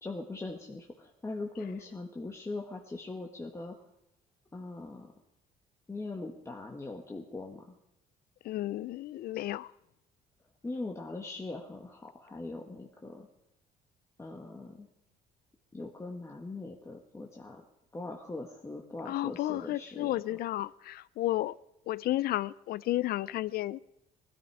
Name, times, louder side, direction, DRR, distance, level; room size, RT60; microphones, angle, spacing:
voice 1, 0.0-3.8 4.5-5.1 5.9-7.7 10.6-13.3 14.2-14.9 15.7-17.6 17.9-20.1, left 2 dB, 15° left, 1.7 m, -41 dB
voice 2, 8.4-9.7 19.1-21.5 21.9-23.8, left 15 dB, 65° left, 0.5 m, -32 dB
19.5 x 13.5 x 4.9 m
cardioid pair, 110°, 17 cm